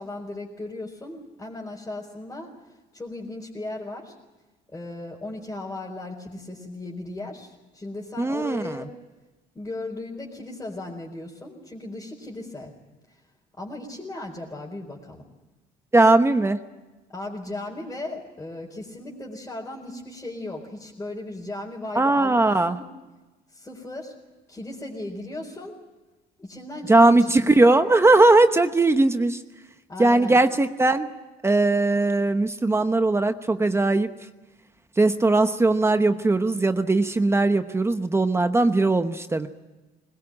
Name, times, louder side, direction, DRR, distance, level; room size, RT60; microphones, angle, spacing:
voice 1, 0.0-4.1 4.7-8.9 9.5-12.7 13.1-13.2 13.6-15.2 17.1-22.9 23.5-24.1 24.5-25.8 26.4-27.2 27.4-27.6 29.9-30.4, left 2 dB, 15° left, -4 dB, 4.5 m, -36 dB
voice 2, 8.2-8.8 15.9-16.6 21.9-22.8 26.9-29.4 30.0-31.1 31.4-34.1 35.0-39.5, right 2 dB, 15° right, 9 dB, 1.0 m, -19 dB
21.0 x 21.0 x 8.8 m, 1.2 s
cardioid pair, 110°, 17 cm